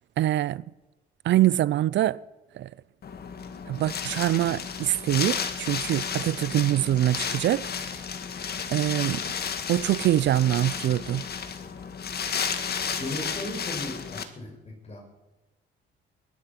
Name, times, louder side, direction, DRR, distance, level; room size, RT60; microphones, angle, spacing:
voice 1, 0.2-0.6 1.2-2.2 2.5-2.7 3.7-7.7 8.7-9.2 9.7-11.2, right 13 dB, 65° right, 0.5 m, -24 dB
Wind, 3.0-14.2, left 6 dB, 55° left, 1.7 m, -33 dB
voice 2, 12.9-15.0, left 1 dB, 30° left, 6.0 m, -36 dB
21.0 x 11.5 x 5.9 m
cardioid pair, 90°, 20 cm